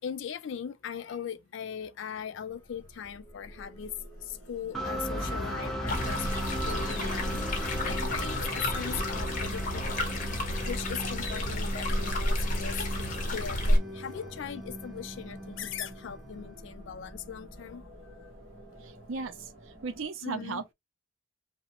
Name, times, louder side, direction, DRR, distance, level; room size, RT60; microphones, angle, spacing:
voice 1, 0.0-3.9 4.2-6.2 6.6-10.4 10.7-18.3 19.0-19.1 20.2-20.6, left 8 dB, 65° left, 0.3 m, -39 dB
sound 1, 2.1-20.1, equal, 40° right, 0.9 m, -51 dB
sound 2, 4.7-16.5, equal, ahead, 0.6 m, -37 dB
sound 3, 5.9-13.8, left 1 dB, 40° left, 0.7 m, -30 dB
voice 2, 18.8-19.5 19.8-20.7, right 4 dB, 70° right, 0.5 m, -36 dB
2.8 x 2.0 x 2.8 m
head